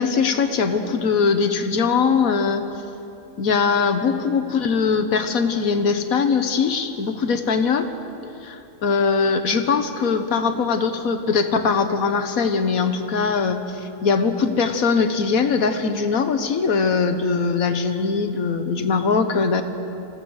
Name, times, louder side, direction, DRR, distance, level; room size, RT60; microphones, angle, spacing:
voice 1, 0.0-2.6 3.4-7.9 8.8-19.6, left 5 dB, 85° left, 8 dB, 1.6 m, -21 dB
28.0 x 16.5 x 6.4 m, 2.9 s
omnidirectional pair, 1.4 m